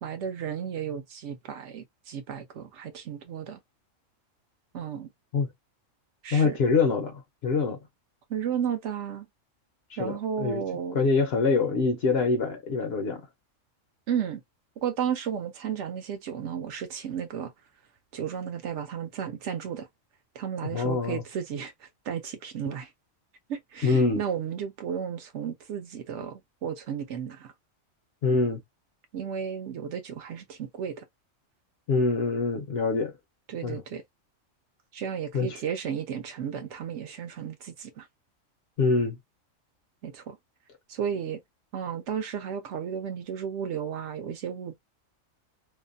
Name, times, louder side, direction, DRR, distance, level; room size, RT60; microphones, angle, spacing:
voice 1, 0.0-3.6 4.7-5.1 6.2-6.6 8.3-9.3 10.0-11.0 14.1-14.4 14.8-17.5 18.1-19.9 20.3-22.9 23.5-27.5 29.1-31.0 33.5-34.0 34.9-38.1 40.0-40.4 40.9-41.4 41.7-44.7, right 8 dB, 70° right, 0.8 m, -33 dB
voice 2, 6.3-7.8 10.0-10.6 10.9-13.3 20.6-21.2 23.8-24.2 28.2-28.6 31.9-33.1 33.6-33.8 35.3-35.6 38.8-39.2, left 4 dB, 60° left, 0.7 m, -25 dB
2.6 x 2.1 x 2.5 m
omnidirectional pair, 1.4 m